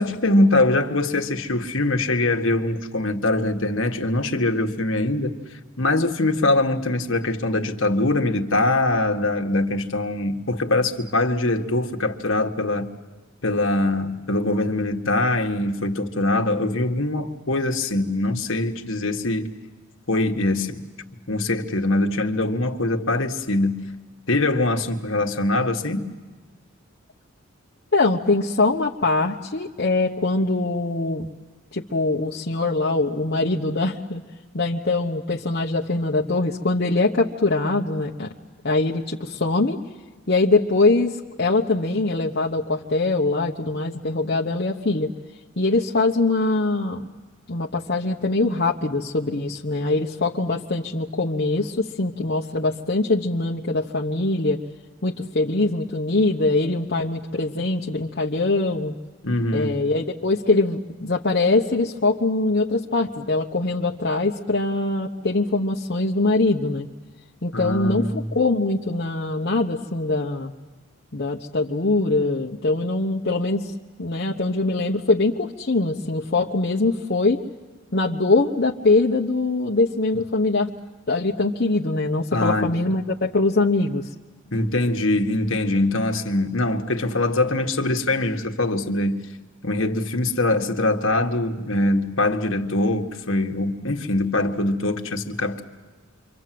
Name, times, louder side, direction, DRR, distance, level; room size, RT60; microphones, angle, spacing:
voice 1, 0.0-5.4 5.8-12.9 13.4-19.5 20.1-20.9 21.3-23.8 24.3-26.1 59.2-59.7 67.5-68.3 82.3-82.7 84.5-89.2 89.6-95.6, left 2 dB, 65° left, 1.7 m, -23 dB
voice 2, 27.9-31.3 31.7-34.2 34.5-38.3 38.6-39.8 40.3-45.1 45.6-47.1 47.5-54.6 55.0-58.9 59.5-66.9 67.4-70.5 71.1-73.7 74.0-77.4 77.9-80.7 81.1-84.1, left 2 dB, 50° left, 1.0 m, -22 dB
28.5 x 24.5 x 7.7 m
head